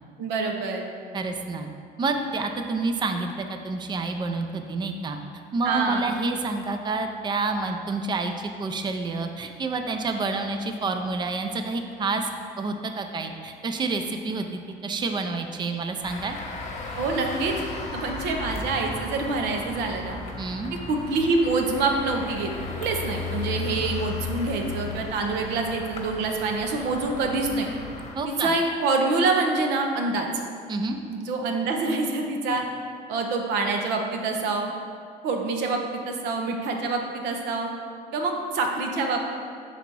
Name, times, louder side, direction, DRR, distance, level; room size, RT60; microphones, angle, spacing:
voice 1, 0.2-0.9 5.6-6.0 17.0-17.5 17.9-20.2 20.9-22.5 22.8-27.7 28.3-30.3 31.1-32.6 33.1-34.7 35.2-37.7 38.1-39.3, right 3 dB, 90° right, 2 dB, 0.7 m, -26 dB
voice 2, 1.1-1.7 2.0-5.2 5.5-12.3 12.6-16.4 20.4-20.7 28.1-28.5 30.7-31.0, right 3 dB, 25° right, 6 dB, 0.4 m, -28 dB
sound 1, 16.0-28.1, left 3 dB, 40° left, 1.0 m, -35 dB
5.6 x 4.0 x 4.6 m, 2.3 s
cardioid pair, 110°, 17 cm